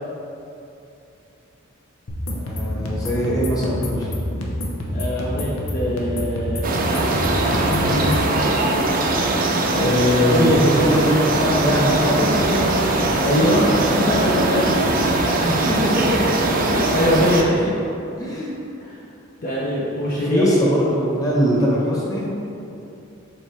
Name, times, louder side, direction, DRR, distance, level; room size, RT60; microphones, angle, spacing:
sound 1, 2.1-8.3, equal, 90° left, 0.9 m, -27 dB
voice 1, 2.3-4.1 10.3-12.7 13.7-14.6 15.9-16.2 18.2-18.5 20.1-22.3, equal, 15° left, -6 dB, 1.3 m, -22 dB
voice 2, 4.9-8.5 8.8-8.9 9.6-10.7 13.2-13.7 14.0-15.5 16.7-17.7 18.8-18.9 19.4-20.6, left 1 dB, 40° left, -6 dB, 0.7 m, -23 dB
sound 2, 6.6-17.4, right 2 dB, 45° right, 0.6 m, -21 dB
7.4 x 4.4 x 3.4 m, 2.8 s
head